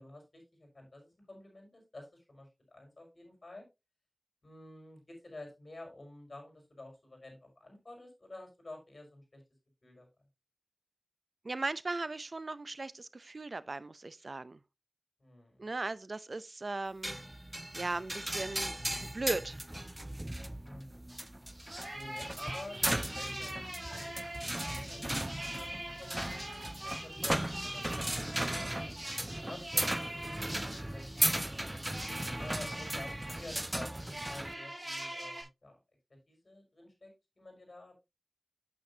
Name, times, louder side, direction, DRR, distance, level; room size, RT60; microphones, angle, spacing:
voice 1, 0.0-3.7 4.4-9.4 9.8-10.1 15.2-15.7 20.6-21.2 21.9-23.6 23.9-24.2 24.5-29.0 29.5-31.4 32.4-35.7 36.3-37.9, left 2 dB, 65° left, 5.3 m, -50 dB
voice 2, 11.4-14.6 15.6-17.2 17.7-18.7 19.0-19.6, right 3 dB, 70° right, 0.5 m, -37 dB
sound 1, 17.0-34.5, right 1 dB, 25° right, 0.4 m, -37 dB
sound 2, 21.1-21.2 21.5-35.4, right 1 dB, 40° right, 5.8 m, -43 dB
8.6 x 8.5 x 2.8 m
wide cardioid pair, 45°, 0 cm